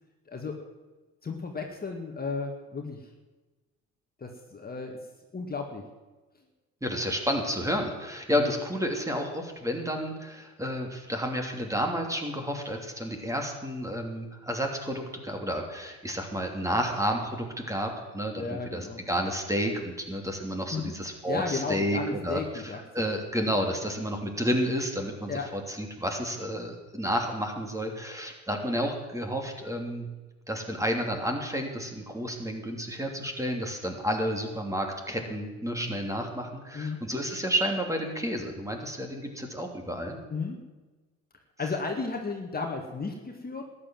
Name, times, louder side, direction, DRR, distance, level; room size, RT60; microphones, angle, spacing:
voice 1, 0.3-0.6 1.2-3.1 4.2-5.0 5.3-5.8 8.3-8.5 18.4-19.0 20.7-20.9 21.3-23.0 25.3-25.5 35.8-36.0 36.7-37.0 40.3-40.6 41.6-43.6, left 4 dB, 25° left, 2 dB, 2.0 m, -34 dB
voice 2, 6.8-18.8 19.1-25.3 25.7-30.1 30.5-40.2, equal, 10° right, 3 dB, 2.9 m, -31 dB
13.5 x 10.0 x 7.7 m, 1.2 s
supercardioid pair, 75°, 34 cm